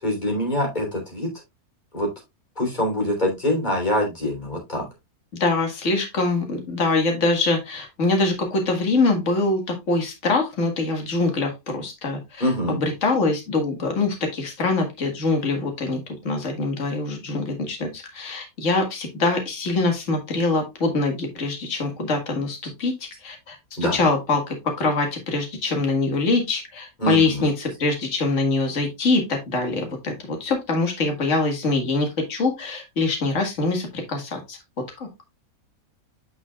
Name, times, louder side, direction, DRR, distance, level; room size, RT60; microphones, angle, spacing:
voice 1, 0.0-1.3 1.9-2.1 2.6-4.9 12.4-12.8 23.8-24.1 27.0-27.5, left 1 dB, 30° left, 0 dB, 3.6 m, -24 dB
voice 2, 5.4-22.9 23.2-23.6 23.9-34.6, left 3 dB, 55° left, 3 dB, 2.1 m, -24 dB
9.4 x 5.9 x 2.3 m, 0.21 s
omnidirectional pair, 1.6 m